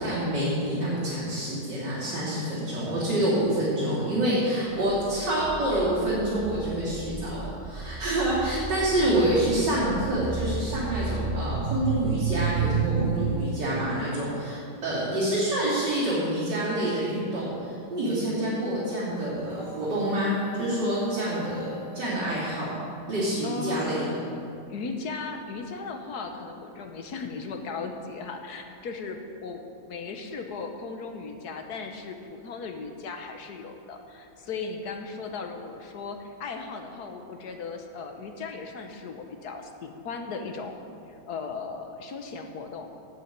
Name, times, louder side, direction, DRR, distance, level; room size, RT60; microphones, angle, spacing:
voice 1, 0.0-22.7 23.1-24.1, right 1 dB, 90° right, -12 dB, 3.9 m, -27 dB
sound 1, 4.8-13.3, right 5 dB, 45° right, 0.8 m, -31 dB
sound 2, 19.5-23.7, equal, 65° right, 4.1 m, -46 dB
voice 2, 23.4-24.1 24.7-29.6 29.9-40.8 41.1-42.9, left 4 dB, 65° left, 5 dB, 1.5 m, -37 dB
8.6 x 8.4 x 8.9 m, 2.5 s
omnidirectional pair, 1.8 m